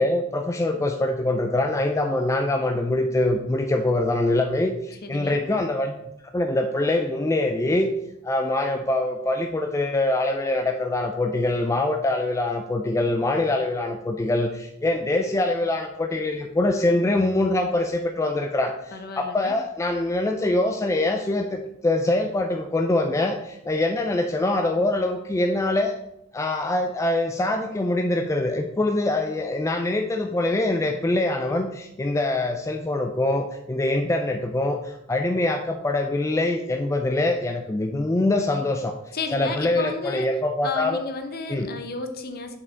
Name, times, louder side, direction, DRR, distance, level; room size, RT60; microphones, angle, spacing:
voice 1, 0.0-6.0 6.3-7.9 8.2-25.9 26.3-39.0 39.3-41.0 41.5-41.7, left 2 dB, 15° left, 4 dB, 0.3 m, -24 dB
voice 2, 5.0-5.4 18.9-19.6 39.1-40.3 40.6-42.6, left 3 dB, 50° left, 7 dB, 0.7 m, -32 dB
5.4 x 5.4 x 3.9 m, 0.86 s
head